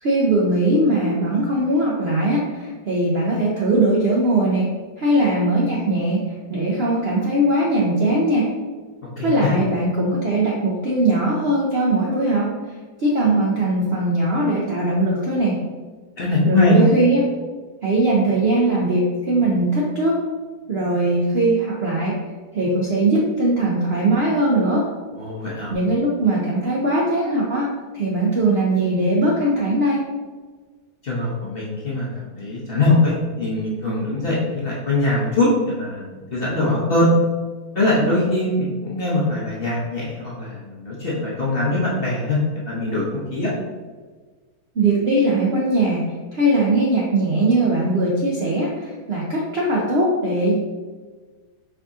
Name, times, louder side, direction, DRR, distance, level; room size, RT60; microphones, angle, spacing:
voice 1, 0.0-8.5 9.2-12.5 13.0-15.6 16.4-17.3 17.8-20.3 20.7-22.2 22.5-24.9 25.7-30.0 44.7-46.0 46.3-50.5, right 1 dB, 60° right, -4 dB, 0.6 m, -20 dB
voice 2, 9.2-9.5 16.2-16.9 25.1-25.7 31.0-37.1 37.7-43.5, left 2 dB, 45° left, -6 dB, 0.8 m, -22 dB
4.8 x 2.6 x 3.5 m, 1.4 s
omnidirectional pair, 1.8 m